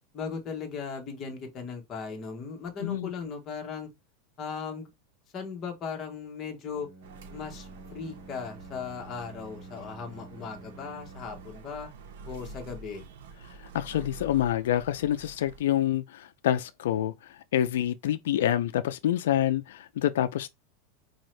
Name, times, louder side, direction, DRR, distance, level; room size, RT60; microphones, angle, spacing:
voice 1, 0.1-3.9 4.4-4.9 5.3-6.9 7.3-11.9 12.3-13.1, left 5 dB, 25° left, 0.9 m, -37 dB
voice 2, 2.8-3.1 13.7-20.5, left 12 dB, 90° left, 0.3 m, -27 dB
Bowed string instrument, 6.6-11.7, right 2 dB, 15° right, 1.2 m, -49 dB
sound 1, 7.0-15.6, right 3 dB, 85° right, 0.8 m, -47 dB
4.2 x 2.7 x 3.1 m
supercardioid pair, 175°, 0 cm